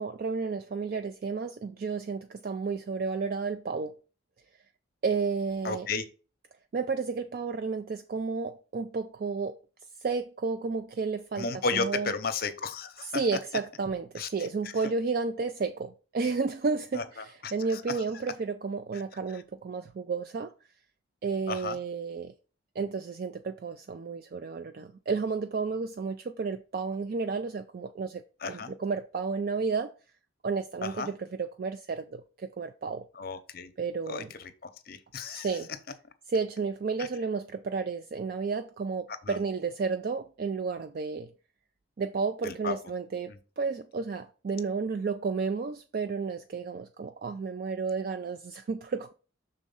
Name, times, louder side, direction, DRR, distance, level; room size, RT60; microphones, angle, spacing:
voice 1, 0.0-3.9 5.0-5.9 6.7-9.6 10.0-12.1 13.1-20.5 21.2-22.3 22.8-29.9 30.4-33.0 33.8-34.3 35.3-35.7 36.3-41.3 42.0-49.1, right 4 dB, 45° right, 0.3 m, -32 dB
voice 2, 5.6-6.0 11.4-13.2 14.2-14.3 16.9-17.8 18.9-19.0 19.3-19.4 21.5-21.8 28.4-28.7 30.8-31.1 33.2-33.7 34.1-35.5 37.0-37.1 39.2-39.4 42.4-42.8, left 4 dB, 45° left, 0.7 m, -34 dB
6.3 x 3.8 x 5.4 m
head